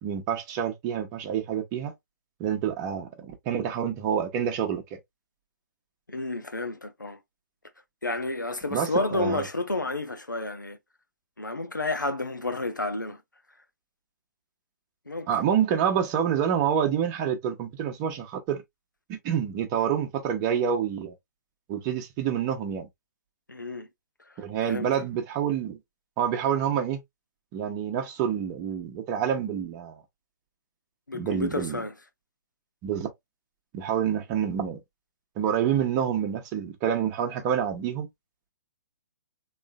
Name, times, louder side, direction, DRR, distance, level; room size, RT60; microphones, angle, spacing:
voice 1, 0.0-1.9 2.4-5.0 8.7-9.5 15.3-18.6 19.1-21.1 21.7-22.9 24.4-25.8 26.2-27.0 27.5-30.0 31.1-31.8 32.8-33.1 33.7-34.8 35.4-38.1, right 8 dB, 25° right, 1.0 m, -27 dB
voice 2, 6.1-7.2 8.0-10.8 11.4-13.2 15.1-15.3 23.5-23.9 24.7-24.9 31.1-31.9, left 2 dB, 85° left, 0.9 m, -30 dB
3.7 x 3.3 x 2.2 m
figure-of-eight pair, 125°, 10 cm